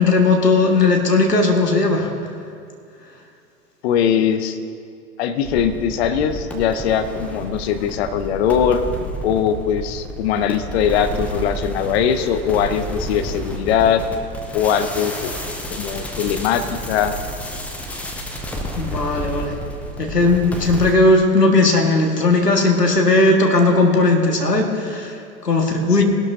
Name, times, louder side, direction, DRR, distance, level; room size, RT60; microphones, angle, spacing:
voice 1, 0.0-2.1 18.8-19.6 20.0-26.0, left 2 dB, 85° left, 2 dB, 1.9 m, -17 dB
voice 2, 3.8-4.6 5.2-8.8 9.2-14.0 14.5-15.3 15.7-16.6 16.9-17.1 26.0-26.1, left 8 dB, 45° left, 9 dB, 0.9 m, -20 dB
sound 1, 5.4-20.9, equal, 5° left, 0.4 m, -30 dB
19.5 x 12.0 x 2.8 m, 2.3 s
figure-of-eight pair, 105°, 47 cm